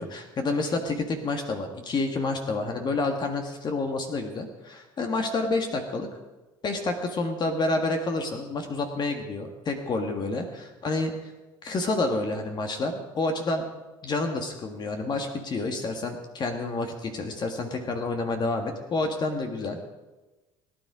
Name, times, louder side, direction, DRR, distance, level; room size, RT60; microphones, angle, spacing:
voice 1, 0.0-6.1 6.6-11.3 11.6-13.7 14.0-19.8, left 3 dB, 40° left, 4 dB, 1.8 m, -29 dB
18.5 x 9.6 x 5.0 m, 1.1 s
supercardioid pair, 90°, 11 cm